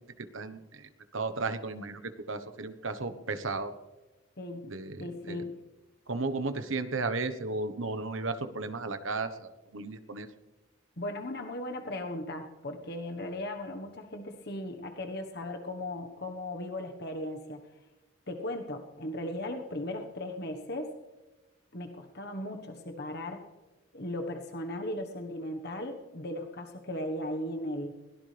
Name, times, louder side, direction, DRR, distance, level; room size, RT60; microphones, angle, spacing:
voice 1, 0.2-3.7 4.6-5.4 6.1-10.3, right 3 dB, 70° right, 9 dB, 1.2 m, -34 dB
voice 2, 5.0-5.6 11.0-17.7 18.3-20.9 21.7-23.4 23.9-28.0, left 1 dB, 50° left, 5 dB, 1.3 m, -37 dB
22.0 x 17.5 x 3.4 m, 1.2 s
head